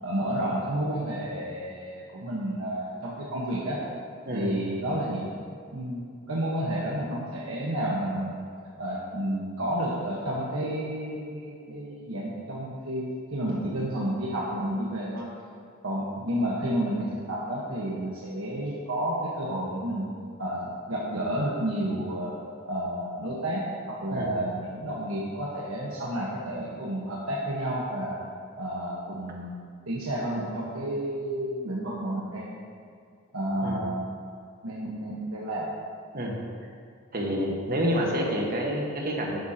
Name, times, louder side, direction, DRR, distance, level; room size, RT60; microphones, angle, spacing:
voice 1, 0.0-3.8 4.3-5.3 5.7-8.5 8.8-15.3 15.8-20.1 20.4-22.3 22.6-28.2 28.6-32.6 33.3-34.1 34.6-35.7, right 1 dB, 85° right, -5 dB, 1.3 m, -31 dB
voice 2, 4.3-4.6 24.1-24.3 33.6-33.8 36.1-36.4 37.1-39.4, equal, 45° right, -1 dB, 1.5 m, -28 dB
11.5 x 9.2 x 2.9 m, 2.3 s
head